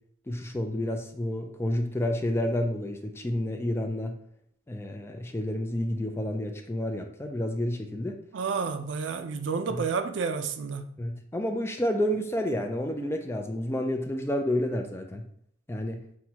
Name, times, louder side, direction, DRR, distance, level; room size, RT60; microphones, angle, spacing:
voice 1, 0.3-4.1 4.7-8.2 9.7-9.8 11.0-15.2 15.7-16.0, left 1 dB, 15° left, 0.4 m, -30 dB
voice 2, 8.3-10.9, right 5 dB, 70° right, 0.4 m, -30 dB
5.9 x 2.3 x 2.8 m
head